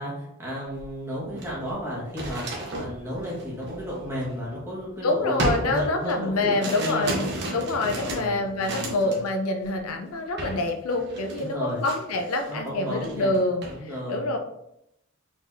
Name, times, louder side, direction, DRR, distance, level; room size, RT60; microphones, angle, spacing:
voice 1, 0.0-9.2 11.4-11.8 12.5-13.3 13.7-14.3, equal, 10° right, -7 dB, 1.7 m, -33 dB
sound 1, 0.7-0.9 1.2-4.8 5.4-9.3 9.6-9.9 10.4-10.6 10.9-12.6 12.9-13.8, right 1 dB, 50° right, 1.0 m, -34 dB
voice 2, 5.0-13.6 14.1-14.4, left 2 dB, 90° left, 4 dB, 0.7 m, -26 dB
4.6 x 4.0 x 2.7 m, 0.79 s
head